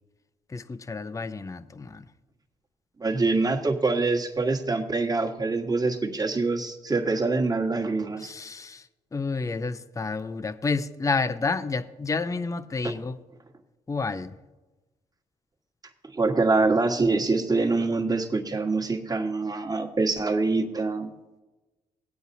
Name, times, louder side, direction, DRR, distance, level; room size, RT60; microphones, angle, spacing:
voice 1, 0.5-2.1 8.2-8.9 9.1-13.2 13.9-14.3, left 4 dB, 20° left, 11 dB, 0.6 m, -30 dB
voice 2, 3.0-8.3 16.1-21.1, right 3 dB, 25° right, 2 dB, 1.5 m, -25 dB
17.5 x 8.8 x 2.7 m, 1.1 s
supercardioid pair, 60°, 15 cm